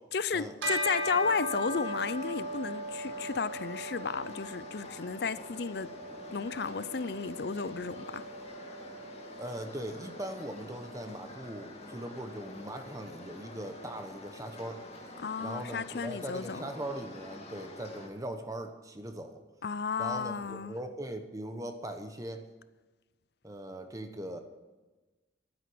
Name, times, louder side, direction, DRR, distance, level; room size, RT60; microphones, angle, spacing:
voice 1, 0.1-5.9 6.3-8.2 15.2-16.7 19.6-20.8, left 5 dB, 60° left, 0.5 m, -33 dB
Bell, 0.6-10.3, equal, 75° right, 2.1 m, -39 dB
sound 1, 1.1-18.1, left 2 dB, 35° left, 2.4 m, -48 dB
voice 2, 9.4-14.8 15.4-19.4 20.0-22.4 23.4-24.4, right 1 dB, 15° right, 1.0 m, -40 dB
11.5 x 10.0 x 7.8 m
head